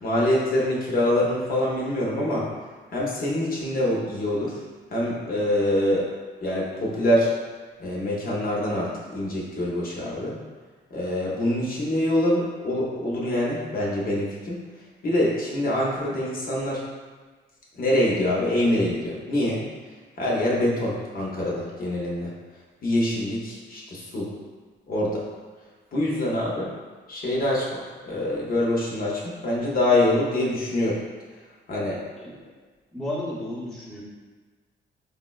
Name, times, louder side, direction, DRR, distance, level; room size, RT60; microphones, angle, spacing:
voice 1, 0.0-2.5 2.9-4.6 4.9-6.1 6.4-7.3 7.8-10.4 10.9-14.6 15.0-16.8 17.8-19.7 20.2-22.3 22.8-24.3 24.9-25.2 25.9-26.7 27.1-27.8 28.1-31.0 31.7-32.3, left 1 dB, 45° left, -5 dB, 0.7 m, -25 dB
voice 2, 32.9-34.0, left 1 dB, ahead, -8 dB, 0.8 m, -32 dB
4.9 x 2.0 x 2.3 m, 1.4 s
cardioid pair, 115°, 20 cm